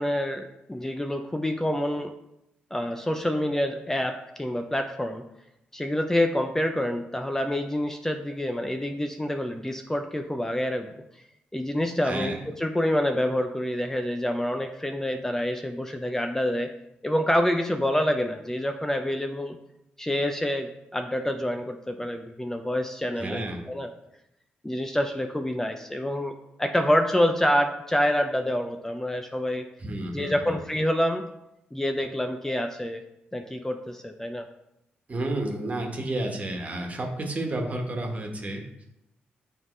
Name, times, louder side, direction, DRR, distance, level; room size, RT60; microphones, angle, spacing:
voice 1, 0.0-2.1 2.7-5.2 5.7-11.0 11.5-16.7 17.0-19.6 20.0-23.9 24.6-29.6 30.1-31.3 31.7-33.0 33.3-34.5, left 1 dB, 10° left, 5 dB, 0.5 m, -27 dB
voice 2, 12.0-12.4 23.1-23.6 29.8-30.6 35.1-38.8, right 1 dB, 40° right, 2 dB, 1.4 m, -31 dB
8.5 x 3.6 x 3.2 m, 0.86 s
supercardioid pair, 60°, 4 cm